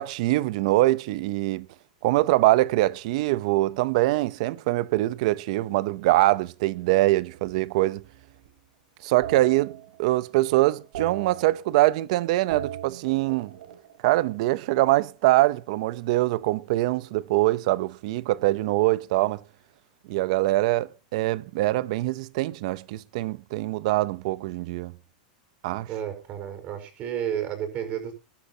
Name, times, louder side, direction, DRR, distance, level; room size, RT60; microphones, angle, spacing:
voice 1, 0.0-1.7 2.0-8.0 9.0-13.5 14.0-19.4 20.1-24.9 25.6-25.9, right 18 dB, 55° right, 0.8 m, -23 dB
sound 1, 7.3-8.6 9.2-10.4 10.7-12.1 12.4-14.7 15.9-17.7, right 10 dB, 75° right, 3.7 m, -41 dB
voice 2, 25.8-28.2, right 9 dB, 30° right, 5.0 m, -31 dB
20.0 x 12.0 x 2.9 m
supercardioid pair, 155°, 4 cm